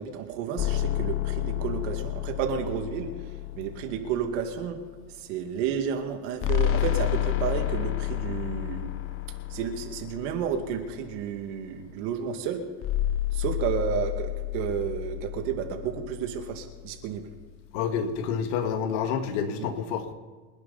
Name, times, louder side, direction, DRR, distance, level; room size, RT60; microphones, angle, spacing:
voice 1, 0.0-4.8 5.2-8.9 9.5-12.6 13.3-17.3, right 8 dB, 70° right, 4 dB, 2.4 m, -31 dB
sound 1, 0.6-5.0 6.4-11.2 12.8-17.2, left 14 dB, 35° left, 0.9 m, -31 dB
voice 2, 17.7-20.1, left 7 dB, 65° left, 7 dB, 2.0 m, -28 dB
26.5 x 10.5 x 4.2 m, 1.4 s
supercardioid pair, 140°, 39 cm